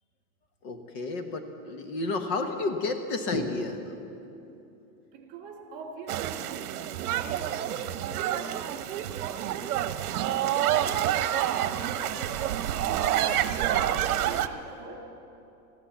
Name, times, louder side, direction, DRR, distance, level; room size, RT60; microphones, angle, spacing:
voice 1, 0.6-5.1, left 3 dB, 45° left, 6 dB, 1.3 m, -32 dB
voice 2, 5.1-9.6 10.1-15.0, right 5 dB, 40° right, 2 dB, 2.3 m, -44 dB
sound 1, 6.1-14.5, right 11 dB, 70° right, 0.9 m, -28 dB
16.0 x 13.0 x 7.2 m, 2.8 s
supercardioid pair, 165°, 45 cm